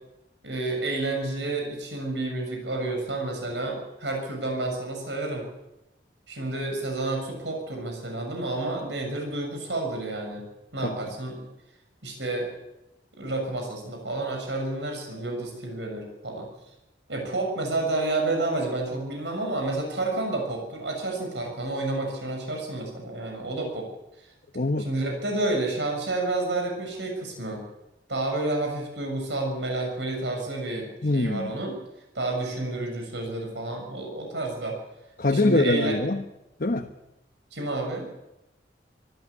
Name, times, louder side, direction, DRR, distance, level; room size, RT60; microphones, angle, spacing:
voice 1, 0.4-5.4 6.3-10.5 10.7-11.4 12.0-12.5 13.2-16.5 17.1-23.9 24.8-27.7 28.1-31.8 32.1-34.8 35.2-35.9 37.5-38.1, right 2 dB, 85° right, 2 dB, 6.9 m, -30 dB
voice 2, 24.5-24.9 31.0-31.5 35.2-36.2 36.6-36.9, left 2 dB, 50° left, 3 dB, 1.1 m, -23 dB
25.0 x 14.0 x 8.5 m, 0.94 s
head